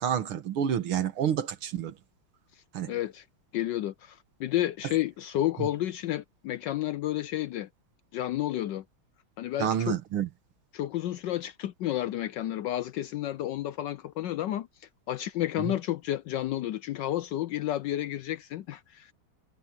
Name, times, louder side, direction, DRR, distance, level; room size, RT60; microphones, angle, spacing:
voice 1, 0.0-1.9 2.7-3.0 5.6-5.7 9.6-10.3 15.6-15.8, right 9 dB, 75° right, 2.2 m, -29 dB
voice 2, 2.9-3.2 3.5-7.7 8.1-8.8 9.4-10.0 10.7-19.1, left 13 dB, 75° left, 1.1 m, -31 dB
omnidirectional pair, 2.3 m